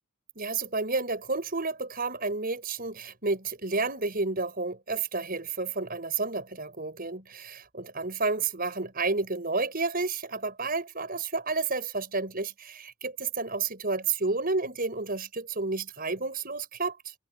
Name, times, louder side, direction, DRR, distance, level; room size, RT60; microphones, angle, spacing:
voice 1, 0.3-17.1, right 3 dB, 40° right, 6.6 m, -31 dB
head